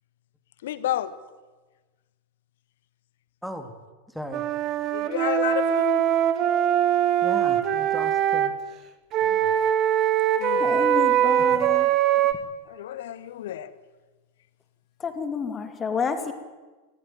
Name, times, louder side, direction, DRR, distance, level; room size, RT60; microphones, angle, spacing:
voice 1, 0.6-1.1 4.9-6.1 10.4-10.7 12.7-13.7, left 12 dB, 55° left, 1.2 m, -30 dB
voice 2, 3.4-3.7 4.1-4.4 7.2-8.6, equal, ahead, 2.8 m, -36 dB
Wind instrument woodwind instrument, 4.3-8.5 9.1-12.3, right 10 dB, 35° right, 1.7 m, -22 dB
voice 3, 9.2-9.5 10.5-12.0 15.0-16.3, left 6 dB, 20° left, 2.5 m, -30 dB
19.0 x 16.0 x 9.3 m
figure-of-eight pair, 90°, 0 cm